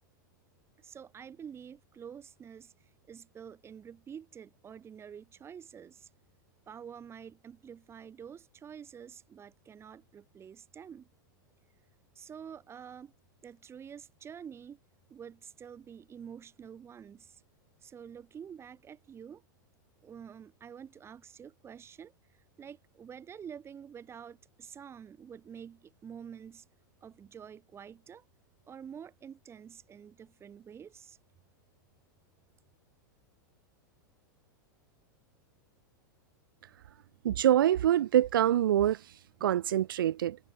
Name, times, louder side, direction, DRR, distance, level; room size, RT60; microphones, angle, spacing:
voice 1, 0.8-6.1 6.7-11.1 12.1-13.1 13.4-14.8 15.1-17.4 17.8-19.4 20.0-26.6 27.0-28.2 28.7-31.2, right 8 dB, 25° right, 4.3 m, -48 dB
voice 2, 37.2-39.1 39.4-40.4, right 11 dB, 80° right, 1.0 m, -25 dB
hypercardioid pair, 120°, 11 cm